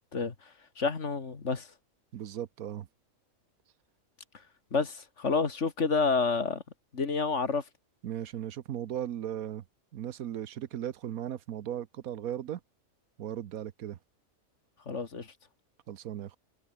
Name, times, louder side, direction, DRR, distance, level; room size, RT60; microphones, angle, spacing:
voice 1, 0.8-1.7 4.7-6.6 6.9-7.6 14.9-15.3, left 4 dB, 55° left, 2.3 m, -29 dB
voice 2, 2.1-2.9 8.0-9.6 9.9-12.6 13.2-14.0 15.9-16.4, right 10 dB, 85° right, 1.3 m, -37 dB
omnidirectional pair, 1.5 m